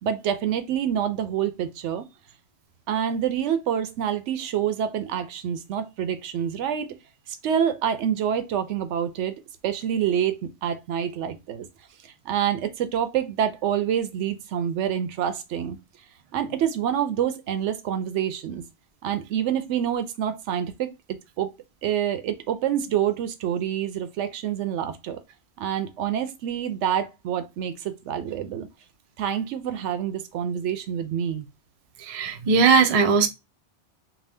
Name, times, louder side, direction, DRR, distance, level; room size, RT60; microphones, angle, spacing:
voice 1, 0.0-2.0 2.9-6.9 7.3-9.3 9.6-11.7 12.0-15.8 16.3-18.6 19.0-21.5 21.8-25.2 25.6-28.7 29.2-31.5, right 9 dB, 75° right, 0.9 m, -27 dB
voice 2, 32.0-33.3, right 5 dB, 55° right, 0.4 m, -19 dB
2.7 x 2.3 x 3.3 m
omnidirectional pair, 1.2 m